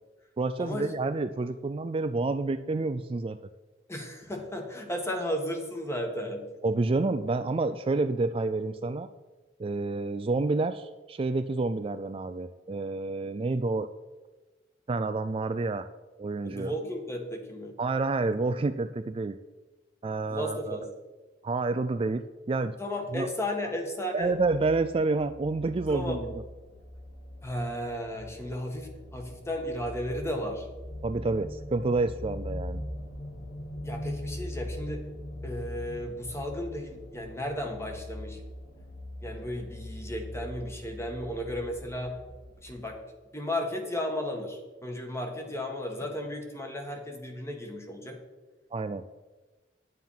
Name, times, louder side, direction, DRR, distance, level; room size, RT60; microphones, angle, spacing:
voice 1, 0.4-3.4 6.6-9.1 9.6-13.9 14.9-15.9 16.2-16.7 17.8-19.4 20.0-20.8 21.4-22.7 23.1-23.3 24.1-26.2 31.0-32.8 48.7-49.0, right 3 dB, 30° right, 10 dB, 0.4 m, -29 dB
voice 2, 3.9-6.5 16.4-17.7 20.3-20.9 22.8-24.3 25.9-26.2 27.4-30.7 33.8-35.0 35.4-38.4 39.2-42.2 42.6-43.0 43.3-48.2, left 1 dB, 15° left, 3 dB, 1.7 m, -34 dB
sound 1, 24.2-42.8, left 1 dB, 60° left, 1.6 m, -41 dB
9.3 x 9.2 x 5.7 m, 1.2 s
head